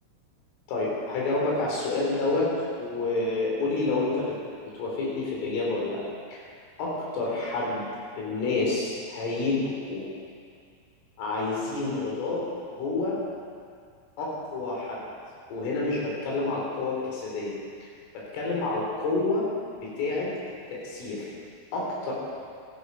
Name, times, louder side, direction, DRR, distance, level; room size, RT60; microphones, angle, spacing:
voice 1, 0.7-2.5 2.8-4.4 4.6-6.0 6.3-6.4 6.8-7.9 8.2-10.1 11.2-12.5 12.7-13.2 14.2-15.0 15.5-17.9 18.1-19.5 19.8-20.3 20.7-21.3 21.7-22.1, left 3 dB, 90° left, -4 dB, 5.9 m, -29 dB
14.5 x 14.0 x 5.5 m, 2.2 s
omnidirectional pair, 5.5 m